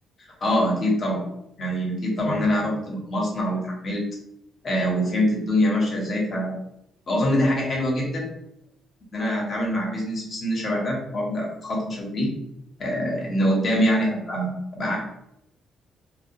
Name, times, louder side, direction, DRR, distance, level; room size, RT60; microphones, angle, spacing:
voice 1, 0.4-1.2 1.6-4.0 4.6-6.6 7.1-8.3 9.1-12.3 12.8-15.0, equal, 45° left, -2 dB, 0.9 m, -24 dB
2.2 x 2.2 x 2.7 m, 0.79 s
cardioid pair, 90°, 0 cm